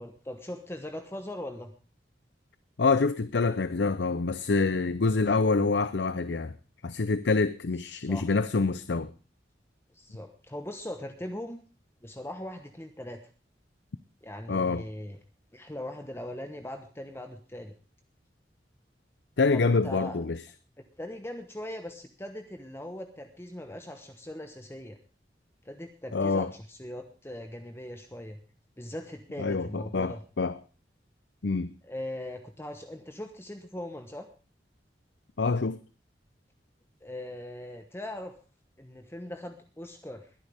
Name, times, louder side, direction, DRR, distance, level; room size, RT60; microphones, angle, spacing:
voice 1, 0.0-1.7 7.8-8.3 9.9-11.6 12.0-13.2 14.2-15.2 15.5-17.7 19.5-20.2 21.0-25.0 25.6-28.4 28.8-30.2 31.8-34.3 37.0-38.3 38.8-40.3, left 1 dB, 15° left, 1.2 m, -40 dB
voice 2, 2.8-6.5 6.8-9.1 14.5-14.8 19.4-20.4 26.1-26.5 29.4-30.6 31.4-31.7 35.4-35.8, left 4 dB, 80° left, 0.6 m, -26 dB
21.0 x 11.0 x 3.5 m
head